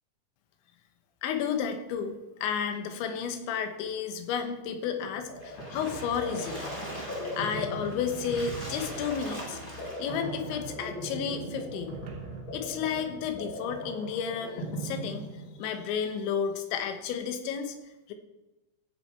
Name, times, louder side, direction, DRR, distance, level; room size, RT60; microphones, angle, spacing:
voice 1, 1.2-6.6 7.4-9.6 10.0-12.0 12.5-15.3 15.6-17.8 18.1-18.2, left 7 dB, 80° left, 7 dB, 3.4 m, -32 dB
sound 1, 5.0-15.8, right 1 dB, 65° left, 4.9 m, -39 dB
Splash splatter, 5.4-10.3, equal, 15° left, 1.7 m, -41 dB
Musical instrument, 5.8-12.5, right 4 dB, 60° right, 2.1 m, -50 dB
16.0 x 7.4 x 4.5 m, 1.0 s
omnidirectional pair, 5.3 m